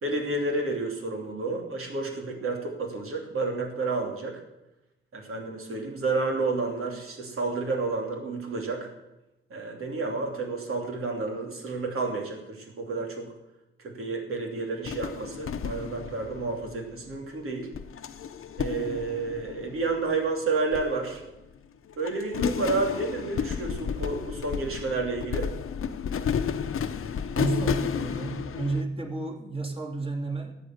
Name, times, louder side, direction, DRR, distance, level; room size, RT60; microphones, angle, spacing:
voice 1, 0.0-4.4 5.1-8.9 9.5-13.3 13.8-17.7 18.6-21.2 22.0-25.5, right 3 dB, 85° right, 1 dB, 3.0 m, -30 dB
sound 1, 14.9-17.2 17.7-20.2 20.7-21.6 21.9-28.8, left 7 dB, 80° left, 0.8 m, -32 dB
voice 2, 27.3-30.5, right 3 dB, 25° right, 0 dB, 2.9 m, -31 dB
14.0 x 9.1 x 7.9 m, 0.94 s
wide cardioid pair, 90°, 21 cm